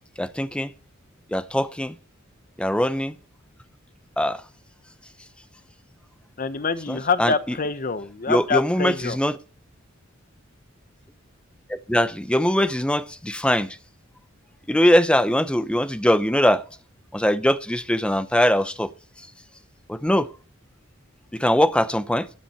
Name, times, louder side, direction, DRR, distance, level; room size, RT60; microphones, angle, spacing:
voice 1, 0.2-0.7 1.3-2.0 2.6-3.1 4.2-4.4 6.9-7.3 8.3-9.4 11.7-13.8 14.7-16.6 17.1-18.9 19.9-20.3 21.3-22.3, equal, 5° left, 0.6 m, -21 dB
voice 2, 6.4-9.2, left 5 dB, 40° left, 0.8 m, -25 dB
13.5 x 10.0 x 4.3 m
head